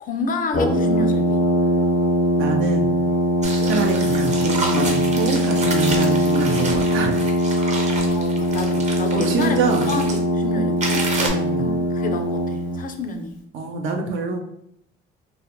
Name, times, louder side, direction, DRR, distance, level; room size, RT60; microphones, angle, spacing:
voice 1, 0.0-1.4 3.5-3.7 7.8-9.6 9.9-11.1 11.6-13.4, left 3 dB, 45° left, 6 dB, 0.4 m, -29 dB
Brass instrument, 0.5-12.8, equal, 75° left, 0.7 m, -21 dB
voice 2, 2.4-3.0 3.6-7.2 7.8-8.0 9.1-9.9 11.2-11.7 13.5-14.4, right 4 dB, 80° right, 3 dB, 0.5 m, -25 dB
sound 1, 3.4-10.2 10.8-11.3, right 2 dB, 35° right, 0.6 m, -30 dB
2.4 x 2.1 x 2.8 m, 0.73 s
cardioid pair, 90°, 20 cm